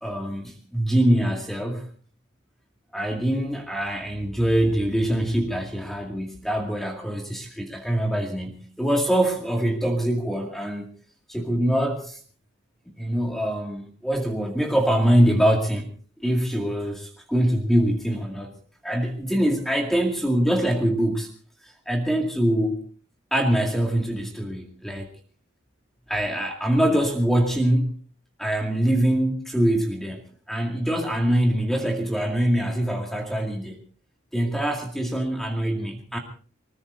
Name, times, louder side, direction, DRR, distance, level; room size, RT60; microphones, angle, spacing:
voice 1, 0.0-1.8 2.9-10.9 11.3-12.2 13.0-15.9 16.2-18.5 18.8-21.3 21.6-22.8 23.3-25.1 26.1-27.9 28.4-33.8 34.3-36.2, right 1 dB, ahead, 1 dB, 2.1 m, -24 dB
24.0 x 21.0 x 2.6 m, 0.41 s
head